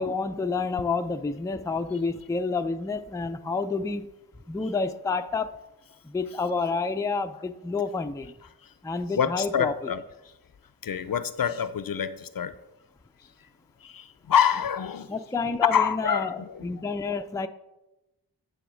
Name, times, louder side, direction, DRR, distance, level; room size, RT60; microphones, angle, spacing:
voice 1, 0.0-4.1 4.5-5.5 6.0-8.3 8.8-9.9 15.1-17.5, left 4 dB, 10° left, 0.4 m, -29 dB
voice 2, 9.1-10.0 10.8-12.5 13.8-15.1 15.7-16.8, left 8 dB, 60° left, 0.5 m, -26 dB
10.0 x 3.5 x 6.2 m
wide cardioid pair, 55°, 40 cm